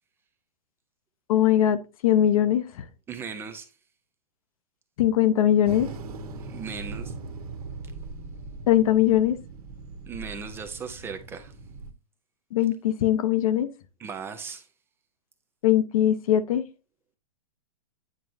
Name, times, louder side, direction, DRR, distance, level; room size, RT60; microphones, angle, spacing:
voice 1, 1.3-2.7 5.0-5.9 8.7-9.4 12.5-13.7 15.6-16.6, left 11 dB, 65° left, 0.8 m, -21 dB
voice 2, 3.1-3.7 6.4-7.1 10.1-11.5 14.0-14.7, right 5 dB, 10° right, 0.4 m, -37 dB
sound 1, 5.6-11.9, right 3 dB, 70° right, 1.3 m, -40 dB
9.3 x 4.5 x 2.6 m
hypercardioid pair, 150°, 20 cm